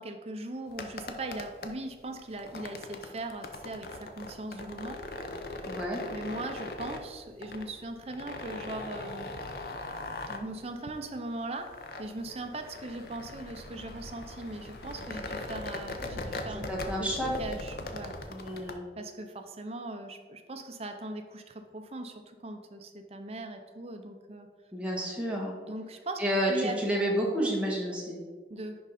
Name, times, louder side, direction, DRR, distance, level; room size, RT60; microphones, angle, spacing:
voice 1, 0.0-5.0 6.1-9.3 10.4-11.7 12.0-16.7 17.0-17.1 17.4-18.1 19.0-24.5 25.7-26.8 28.5-28.8, right 2 dB, 35° right, 5 dB, 0.6 m, -39 dB
sound 1, 0.7-18.7, left 2 dB, 55° left, 0.7 m, -41 dB
voice 2, 5.7-6.0 10.3-10.5 16.7-17.3 18.3-18.9 24.7-25.6 26.2-28.2, equal, 5° right, -3 dB, 1.4 m, -30 dB
Thunder / Bicycle, 12.5-18.2, left 1 dB, 80° left, 1.1 m, -46 dB
10.5 x 3.7 x 4.2 m, 1.5 s
head